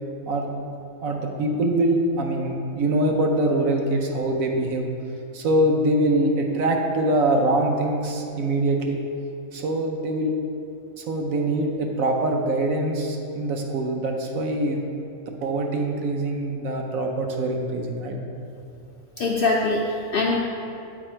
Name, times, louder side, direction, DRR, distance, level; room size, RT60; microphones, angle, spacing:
voice 1, 0.3-0.7 1.0-4.9 5.3-9.0 9.5-10.3 11.0-14.8 15.3-18.2, right 1 dB, 70° right, 2 dB, 1.1 m, -24 dB
voice 2, 19.2-20.4, left 3 dB, 90° left, -1 dB, 0.4 m, -23 dB
8.4 x 4.1 x 4.4 m, 2.6 s
omnidirectional pair, 1.5 m